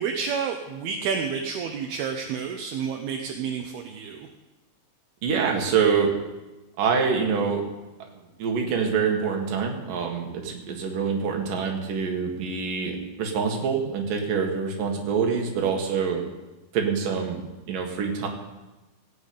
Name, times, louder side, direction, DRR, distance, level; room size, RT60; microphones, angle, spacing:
voice 1, 0.0-4.3, right 6 dB, 75° right, 2 dB, 2.9 m, -30 dB
voice 2, 5.2-6.1 6.8-7.6 8.4-16.2 16.7-18.3, right 6 dB, 60° right, 1 dB, 3.4 m, -25 dB
17.5 x 7.1 x 8.6 m, 1.1 s
omnidirectional pair, 4.6 m